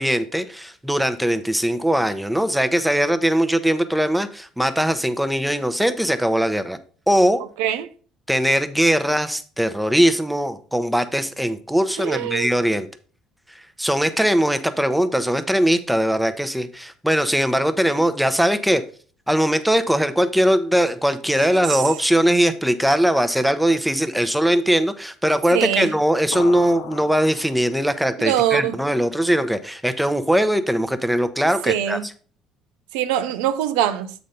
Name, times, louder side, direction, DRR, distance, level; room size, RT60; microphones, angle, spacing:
voice 1, 0.0-6.8 7.1-7.4 8.3-12.9 13.8-18.8 19.3-32.0, equal, 5° right, 0.8 m, -20 dB
voice 2, 7.6-7.9 12.0-12.5 21.4-21.6 25.5-25.9 28.2-28.8 31.7-32.0 32.9-34.1, right 11 dB, 75° right, 0.5 m, -23 dB
sound 1, 26.3-28.0, left 7 dB, 75° left, 0.6 m, -36 dB
7.6 x 4.1 x 5.1 m
hypercardioid pair, 60°, 0 cm